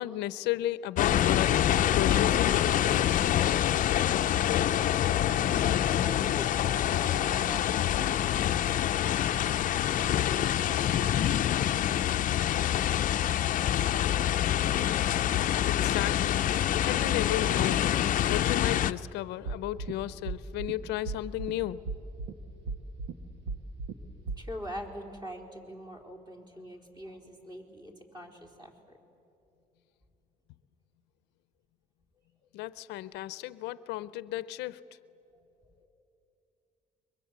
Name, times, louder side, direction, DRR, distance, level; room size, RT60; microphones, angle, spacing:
voice 1, 0.0-1.6 1.9-3.4 15.6-17.9 18.3-21.8 32.5-34.8, left 14 dB, 90° left, 16 dB, 0.7 m, -34 dB
sound 1, 1.0-18.9, left 11 dB, 50° left, 0.6 m, -26 dB
voice 2, 6.0-11.7 24.4-29.0 35.3-35.4 35.8-35.9, equal, 25° right, 2 dB, 4.2 m, -45 dB
sound 2, 19.4-19.9 20.3-20.7 21.1-21.5 21.9-22.3 22.7-23.1 23.5-23.9 24.3-24.4, right 4 dB, 90° right, 1.6 m, -35 dB
28.5 x 23.5 x 8.2 m, 2.8 s
cardioid pair, 110°, 17 cm